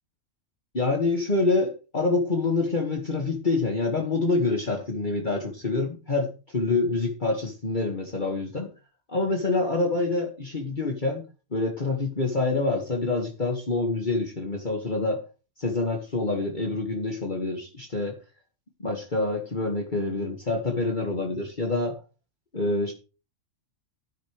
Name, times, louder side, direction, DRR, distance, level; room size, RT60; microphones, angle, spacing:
voice 1, 0.7-8.7 9.1-11.2 11.5-15.2 15.6-18.2 18.8-22.0 22.5-22.9, left 3 dB, 35° left, 1 dB, 2.2 m, -26 dB
13.5 x 11.5 x 3.4 m, 0.33 s
omnidirectional pair, 1.4 m